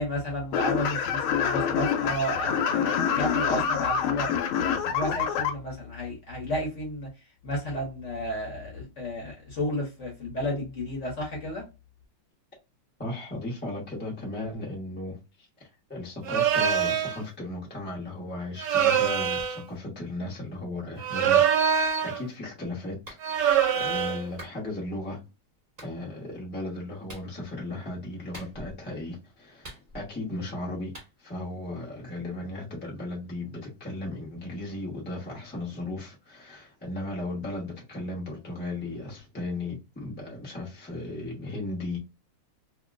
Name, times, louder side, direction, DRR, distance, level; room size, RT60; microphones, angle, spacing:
voice 1, 0.0-4.3 4.6-7.1 7.4-11.7, equal, 50° left, 0.9 m, -32 dB
sound 1, 0.5-5.5, left 7 dB, 80° left, 1.4 m, -26 dB
voice 2, 13.0-25.2 25.8-30.9 31.2-42.0, left 2 dB, 15° left, 0.4 m, -36 dB
sound 2, 16.3-17.2 18.6-19.6 21.0-22.2 23.2-24.2, right 8 dB, 70° right, 1.0 m, -24 dB
Clapping, 23.1-23.3 24.4-24.6 25.8-25.9 27.1-27.3 28.3-28.8 29.6-30.2 30.9-31.1, right 1 dB, 25° right, 1.0 m, -44 dB
2.9 x 2.8 x 2.4 m
omnidirectional pair, 2.3 m